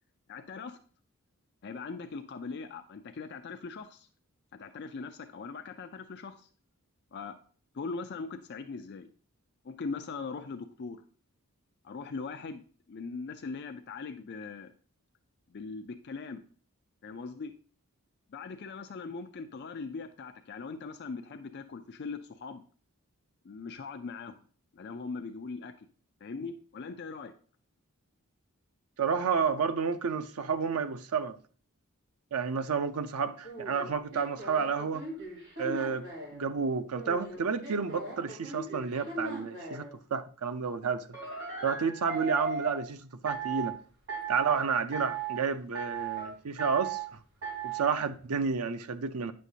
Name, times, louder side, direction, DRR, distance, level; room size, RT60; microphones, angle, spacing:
voice 1, 0.3-0.8 1.6-4.1 4.5-6.5 7.1-7.4 7.7-9.1 9.6-11.0 11.8-12.6 12.9-14.7 15.5-16.4 17.0-17.5 18.3-22.6 23.4-24.4 24.7-25.9 26.2-27.3, left 4 dB, 50° left, 0.4 m, -40 dB
voice 2, 29.0-31.4 32.3-35.1 35.6-36.1 36.3-41.1 41.6-43.8 44.3-47.2 47.6-49.3, right 5 dB, 85° right, 0.6 m, -30 dB
sound 1, 33.4-36.4 36.9-39.9 41.1-42.8 43.3-43.7 44.1-44.6 44.9-45.4 45.7-46.3 46.6-47.1 47.4-47.9, right 4 dB, 55° right, 3.5 m, -37 dB
9.0 x 6.4 x 2.7 m
head